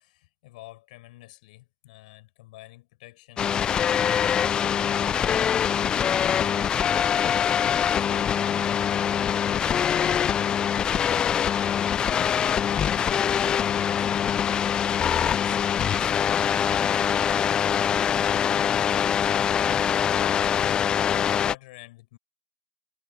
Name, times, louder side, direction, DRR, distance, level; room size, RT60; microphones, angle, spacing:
voice 1, 0.0-4.5, left 19 dB, 30° left, 7.5 m, -48 dB
sound 1, 3.4-21.6, left 8 dB, 10° left, 0.8 m, -24 dB
figure-of-eight pair, 145°, 9 cm